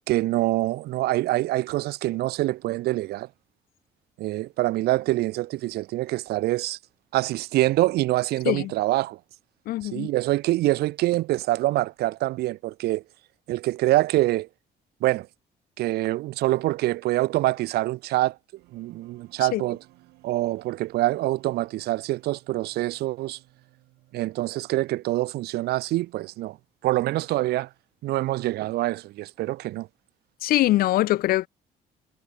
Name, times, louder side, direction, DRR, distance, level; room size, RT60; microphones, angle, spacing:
voice 1, 0.1-3.3 4.2-6.8 7.1-9.2 9.8-13.0 13.5-14.5 15.0-15.3 15.8-18.4 18.7-19.8 20.2-23.4 24.1-26.6 26.8-27.7 28.0-29.9, right 17 dB, 70° right, 0.6 m, -25 dB
voice 2, 9.7-10.1 19.4-19.6 30.4-31.5, left 16 dB, 60° left, 0.4 m, -23 dB
sound 1, 18.6-25.6, right 20 dB, 90° right, 7.9 m, -59 dB
cardioid pair, 110°, 17 cm